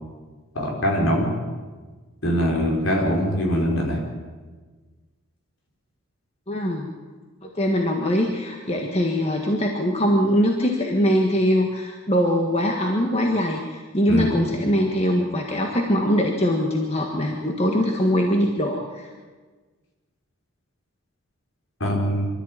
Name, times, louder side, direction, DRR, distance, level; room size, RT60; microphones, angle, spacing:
voice 1, 0.5-1.3 2.2-4.0 14.1-14.4 21.8-22.3, equal, 65° left, 0 dB, 5.1 m, -22 dB
voice 2, 6.5-6.9 7.4-19.1, equal, 30° left, 1 dB, 1.6 m, -22 dB
24.5 x 13.5 x 9.0 m, 1.4 s
head